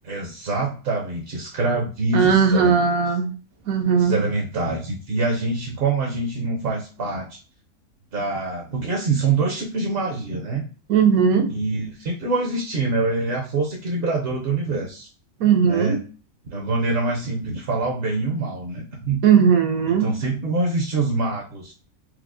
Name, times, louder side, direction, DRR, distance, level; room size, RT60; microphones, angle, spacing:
voice 1, 0.0-2.8 3.9-7.4 8.1-10.6 11.5-15.1 15.6-16.0 16.5-19.2 19.9-21.7, right 3 dB, 50° right, -1 dB, 0.7 m, -25 dB
voice 2, 2.1-3.3 3.7-4.2 10.9-11.5 15.4-16.0 19.2-20.1, right 6 dB, 75° right, 4 dB, 1.1 m, -17 dB
4.6 x 2.0 x 2.4 m, 0.36 s
omnidirectional pair, 1.5 m